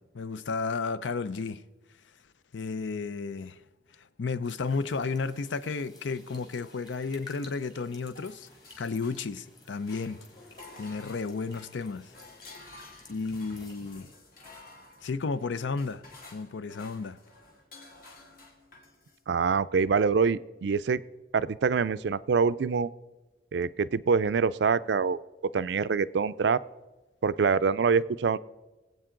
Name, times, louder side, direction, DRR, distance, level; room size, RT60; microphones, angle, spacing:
voice 1, 0.0-1.6 2.5-3.6 4.2-8.5 8.8-10.2 10.8-12.1 13.1-14.1 15.0-16.0 16.3-17.2, left 4 dB, 85° left, 0.5 m, -33 dB
sound 1, 4.4-13.9, left 3 dB, 25° left, 2.2 m, -53 dB
sound 2, 8.2-9.5 9.8-19.2, left 2 dB, 50° left, 2.3 m, -52 dB
voice 2, 19.3-21.0 21.3-22.9 23.5-25.2 25.5-26.6 27.2-28.4, right 5 dB, 70° right, 0.4 m, -25 dB
22.5 x 8.2 x 3.8 m
head